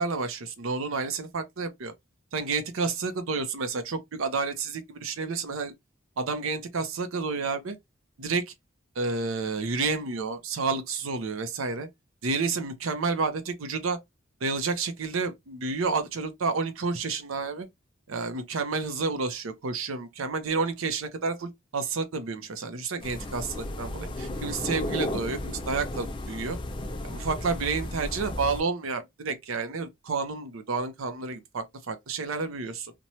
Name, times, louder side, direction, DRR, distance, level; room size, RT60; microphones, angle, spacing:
voice 1, 0.0-1.9 2.3-5.7 6.2-7.8 8.2-8.5 9.0-11.9 12.2-14.0 14.4-17.7 18.1-26.6 27.0-32.9, right 4 dB, 80° right, 0.6 m, -30 dB
sound 1, 23.0-28.6, left 1 dB, 25° left, 0.3 m, -34 dB
3.0 x 2.2 x 2.7 m
head